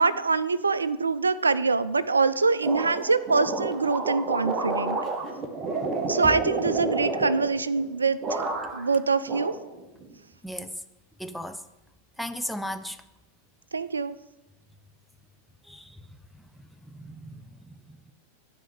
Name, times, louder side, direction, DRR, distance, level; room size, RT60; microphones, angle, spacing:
voice 1, 0.0-5.0 6.1-8.4 8.7-9.5 13.7-14.1, right 4 dB, 75° right, 0.3 m, -24 dB
sound 1, 2.6-7.9 8.2-8.9 9.3-10.1, right 3 dB, 25° right, 0.9 m, -30 dB
voice 2, 11.2-11.6 12.2-13.0 15.7-16.0 16.9-18.1, equal, ahead, 0.5 m, -36 dB
9.3 x 3.3 x 6.8 m
figure-of-eight pair, 90°, 0 cm